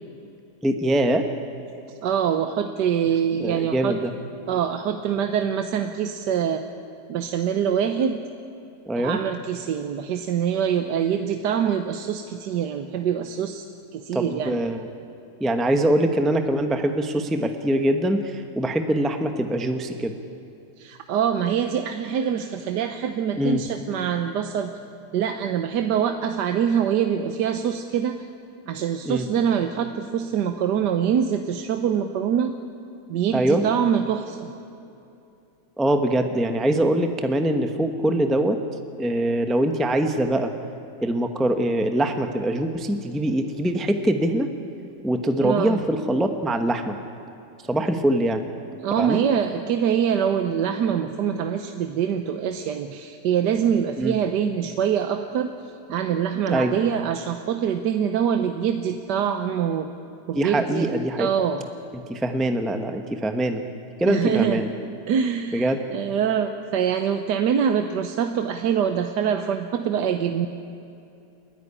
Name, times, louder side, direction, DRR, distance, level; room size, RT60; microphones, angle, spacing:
voice 1, 0.6-1.3 3.4-4.1 8.9-9.2 14.1-14.9 15.4-20.2 23.4-23.6 29.0-29.3 33.3-33.6 35.8-38.6 39.0-40.5 41.0-44.5 45.0-47.0 47.6-48.5 49.0-49.2 54.0-54.2 56.5-56.7 60.3-61.3 61.9-63.6 64.0-64.7 65.5-65.8, right 1 dB, ahead, 6 dB, 0.8 m, -23 dB
voice 2, 2.0-4.0 4.5-6.6 7.1-8.2 9.0-13.7 13.9-14.6 20.8-24.7 25.1-28.2 28.7-32.5 33.1-34.5 45.4-45.8 48.8-55.5 55.9-59.9 60.3-61.6 64.0-64.6 65.1-70.5, right 8 dB, 90° right, 7 dB, 1.4 m, -24 dB
29.0 x 11.0 x 10.0 m, 2.8 s
omnidirectional pair, 1.8 m